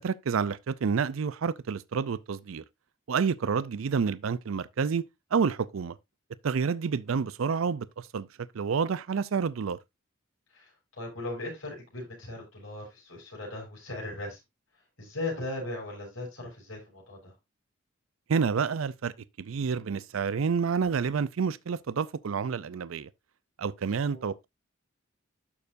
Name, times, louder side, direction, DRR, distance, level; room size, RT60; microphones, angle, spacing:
voice 1, 0.0-2.6 3.1-5.0 5.3-6.0 6.4-8.3 8.5-9.8 18.3-19.1 19.4-23.1 23.6-24.5, right 6 dB, 90° right, 0.5 m, -29 dB
voice 2, 11.0-14.4 15.0-17.3 24.1-24.3, left 2 dB, 85° left, 6.5 m, -38 dB
12.0 x 6.7 x 2.6 m
head